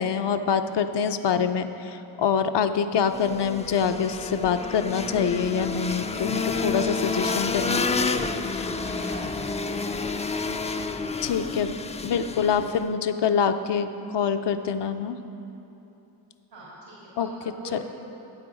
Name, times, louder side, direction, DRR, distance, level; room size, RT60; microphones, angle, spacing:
voice 1, 0.0-7.8 11.2-15.2 17.2-17.3, left 7 dB, 65° left, 9 dB, 0.6 m, -25 dB
sound 1, 3.1-12.9, left 4 dB, 15° left, 0.3 m, -29 dB
voice 2, 7.1-7.5 8.8-10.3 16.5-17.8, right 2 dB, 85° right, -9 dB, 2.3 m, -42 dB
8.5 x 7.9 x 4.8 m, 2.9 s
supercardioid pair, 40°, 46 cm